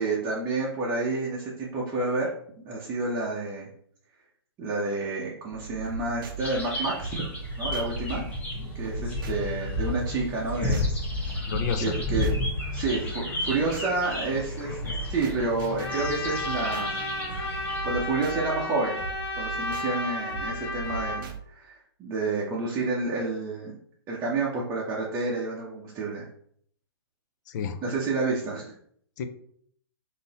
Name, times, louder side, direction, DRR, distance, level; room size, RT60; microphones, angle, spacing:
voice 1, 0.0-2.3 2.6-3.7 4.6-7.3 7.6-8.2 8.5-10.9 11.8-12.3 12.7-14.8 15.1-16.9 17.5-19.0 19.4-23.8 24.1-26.3 27.8-28.7, right 3 dB, 20° right, -5 dB, 0.8 m, -29 dB
sound 1, 5.5-21.4, right 5 dB, 50° right, 0.6 m, -40 dB
sound 2, 6.4-17.8, left 2 dB, 10° left, 1.0 m, -32 dB
voice 2, 11.5-12.0 14.6-14.9 27.5-27.8 29.2-29.3, left 6 dB, 45° left, 8 dB, 0.5 m, -31 dB
Trumpet, 15.8-21.3, left 2 dB, 70° left, 1.0 m, -32 dB
3.7 x 2.7 x 4.1 m, 0.65 s
hypercardioid pair, 140°, 14 cm